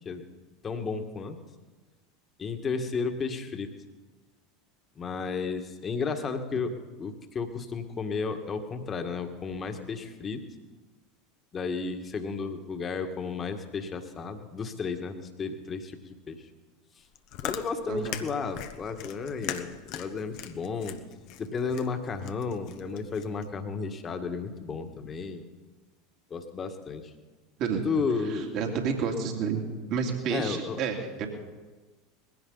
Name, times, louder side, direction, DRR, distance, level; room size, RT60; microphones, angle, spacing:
voice 1, 0.6-1.4 2.4-3.7 5.0-10.4 11.5-16.4 17.4-21.0 21.4-25.5 26.3-27.1 27.9-28.6 30.3-30.8, left 5 dB, 30° left, 6 dB, 1.9 m, -33 dB
Chewing mastication, 17.0-23.5, left 11 dB, 55° left, 1.1 m, -40 dB
voice 2, 17.9-18.2 27.6-27.8 28.3-29.6 29.9-31.3, right 6 dB, 50° right, 2 dB, 2.7 m, -30 dB
20.5 x 16.0 x 4.1 m, 1.3 s
hypercardioid pair, 80°, 0 cm